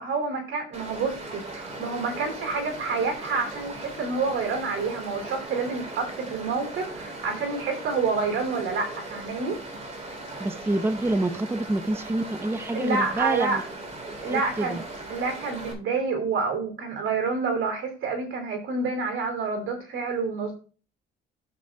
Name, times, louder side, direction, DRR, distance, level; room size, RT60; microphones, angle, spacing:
voice 1, 0.0-9.6 12.7-13.6 14.2-14.8 15.1-20.5, right 4 dB, 80° right, 3 dB, 2.9 m, -28 dB
Stream, 0.7-15.7, right 2 dB, 35° right, 3.4 m, -39 dB
voice 2, 10.4-13.6 14.2-14.8, right 2 dB, 10° right, 10 dB, 0.7 m, -27 dB
11.0 x 7.4 x 2.3 m, 0.39 s
cardioid pair, 90°, 20 cm